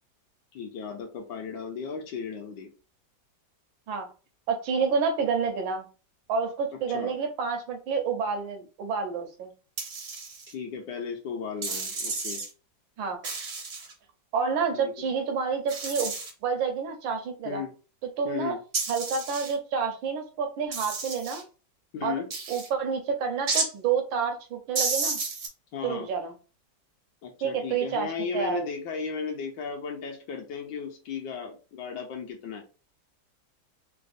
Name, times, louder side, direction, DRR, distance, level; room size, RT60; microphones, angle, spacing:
voice 1, 0.5-2.7 6.9-7.1 10.5-12.4 14.7-14.9 17.4-17.7 18.2-18.6 21.9-22.3 25.7-26.1 27.2-32.6, left 6 dB, 70° left, 2 dB, 1.2 m, -35 dB
voice 2, 4.5-5.9 6.3-9.5 13.0-13.2 14.3-16.1 16.4-17.6 18.2-18.5 18.9-21.4 22.0-22.2 22.5-25.2 25.8-26.3 27.4-28.7, right 6 dB, 80° right, 4 dB, 1.5 m, -29 dB
sound 1, 9.8-10.5 11.6-12.5 13.2-13.9 15.7-16.3 18.7-19.5 20.7-21.4 22.3-22.7 23.5-23.7 24.8-25.5, right 4 dB, 60° right, 0.6 m, -31 dB
3.9 x 2.1 x 2.5 m, 0.34 s
omnidirectional pair, 2.1 m